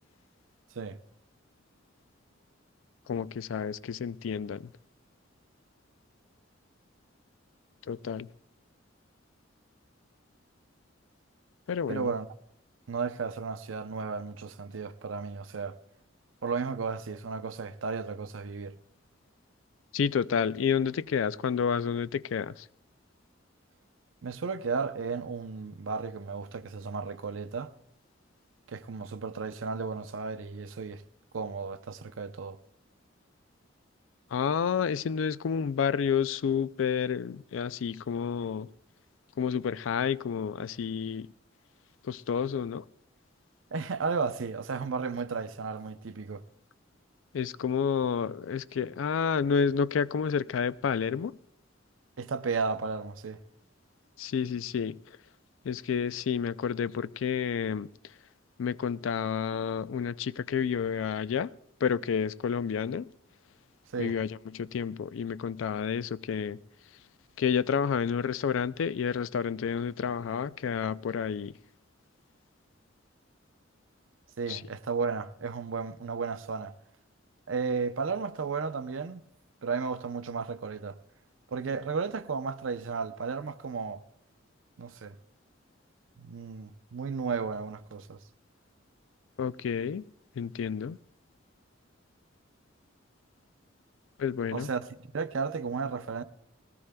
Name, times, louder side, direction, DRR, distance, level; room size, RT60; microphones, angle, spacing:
voice 1, 3.1-4.7 7.9-8.3 11.7-12.1 19.9-22.7 34.3-38.7 39.4-41.3 42.0-42.8 47.3-51.3 54.2-55.0 55.6-57.9 58.6-61.5 61.8-63.1 64.0-66.6 67.4-71.5 74.5-74.6 89.4-90.1 90.4-91.0 94.2-94.7, left 7 dB, 85° left, 0.4 m, -30 dB
voice 2, 11.9-12.3 12.9-15.8 16.4-18.8 24.2-27.7 28.7-31.0 31.3-32.6 43.7-46.4 52.2-53.4 63.9-64.2 74.4-76.7 77.5-79.2 79.6-81.0 81.5-84.0 84.8-85.2 86.2-88.2 94.5-94.9 95.1-96.2, right 5 dB, 90° right, 0.6 m, -34 dB
20.0 x 17.0 x 2.2 m
head